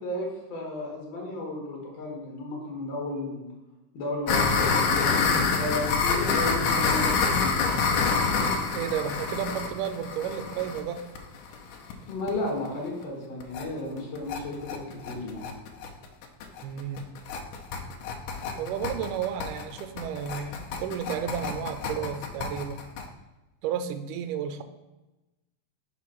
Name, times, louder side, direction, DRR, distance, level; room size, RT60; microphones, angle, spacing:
voice 1, 0.0-3.5 3.9-7.8 12.1-15.4, left 1 dB, 55° left, -3 dB, 2.7 m, -33 dB
sound 1, 4.3-11.9 12.3-12.4 12.7-12.8 13.0-13.1 13.4-13.6 14.0-23.1, left 4 dB, 85° left, 2.4 m, -27 dB
voice 2, 8.7-11.0 16.6-17.1 18.6-22.8 23.6-24.6, right 8 dB, 85° right, 8 dB, 2.1 m, -32 dB
5.6 x 4.7 x 5.8 m, 1.0 s
omnidirectional pair, 3.6 m